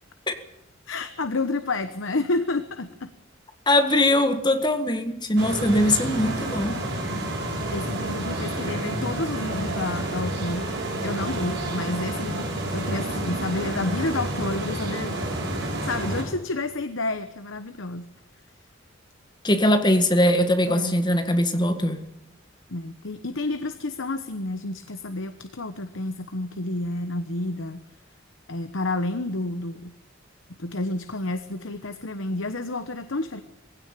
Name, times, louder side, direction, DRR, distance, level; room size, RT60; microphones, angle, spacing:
voice 1, 0.9-3.1 7.7-10.7 11.0-12.5 12.7-15.2 15.6-18.1 20.7-20.9 22.7-27.8 28.5-29.9 30.6-33.4, left 2 dB, 70° left, 1.1 m, -30 dB
voice 2, 3.7-6.8 19.4-22.0, left 1 dB, 20° left, 1.8 m, -21 dB
sound 1, 5.4-16.2, right 1 dB, 55° right, 7.1 m, -29 dB
20.5 x 16.5 x 9.0 m
head